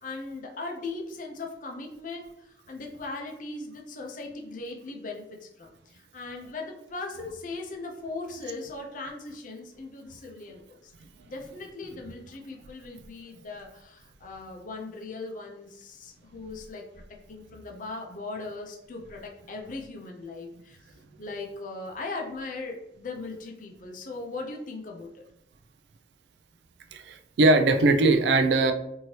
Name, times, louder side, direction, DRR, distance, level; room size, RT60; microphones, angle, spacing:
voice 1, 0.0-10.9 11.3-16.9 17.3-20.8 21.2-25.2, left 3 dB, 45° left, 1 dB, 0.5 m, -39 dB
voice 2, 26.9-28.7, right 2 dB, 70° right, 7 dB, 0.3 m, -20 dB
3.1 x 2.7 x 2.8 m, 0.79 s
head